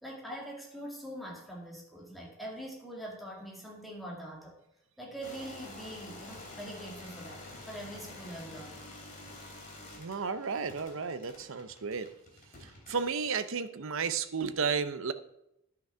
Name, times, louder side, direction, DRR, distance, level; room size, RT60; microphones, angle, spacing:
voice 1, 0.0-4.6 5.0-8.8, right 1 dB, ahead, -3 dB, 2.1 m, -43 dB
sound 1, 5.2-13.3, left 2 dB, 35° left, 3.1 m, -48 dB
voice 2, 10.0-12.1 12.6-15.1, right 5 dB, 60° right, 12 dB, 0.6 m, -33 dB
10.5 x 6.0 x 5.6 m, 0.83 s
head